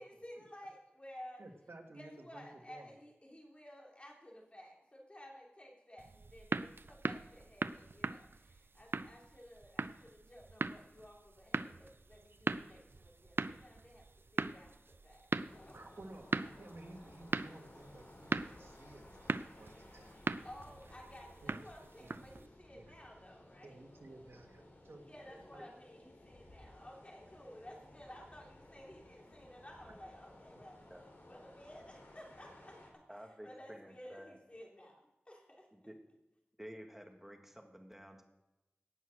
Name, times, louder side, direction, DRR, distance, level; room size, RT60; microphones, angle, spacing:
voice 1, 0.0-1.4 1.9-15.8 20.4-23.8 25.0-30.8 31.3-35.7, equal, 30° left, -1 dB, 3.2 m, -55 dB
voice 2, 1.4-2.9 15.7-16.3 16.6-20.2 21.4-21.5 22.0-22.1 22.7-22.9 23.6-25.1 25.5-25.6, right 2 dB, 85° right, 3 dB, 1.8 m, -54 dB
sound 1, 6.0-22.5, right 3 dB, 65° right, 0.4 m, -41 dB
sound 2, 15.5-32.9, left 1 dB, 65° left, 3.4 m, -58 dB
voice 3, 25.3-25.7 27.6-27.8 30.9-31.0 33.1-34.4 35.7-36.0 36.6-38.2, equal, 5° right, 3 dB, 1.9 m, -52 dB
17.5 x 6.3 x 6.5 m, 0.98 s
wide cardioid pair, 70°, 4 cm